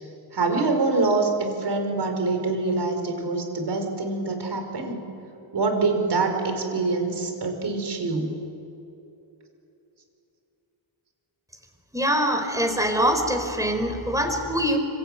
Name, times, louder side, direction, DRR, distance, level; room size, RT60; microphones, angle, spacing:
voice 1, 0.3-5.0 5.5-8.4, right 3 dB, 55° right, 5 dB, 5.0 m, -25 dB
voice 2, 11.9-14.8, equal, 5° right, 5 dB, 4.1 m, -23 dB
25.5 x 23.0 x 9.2 m, 2.9 s
cardioid pair, 95°, 48 cm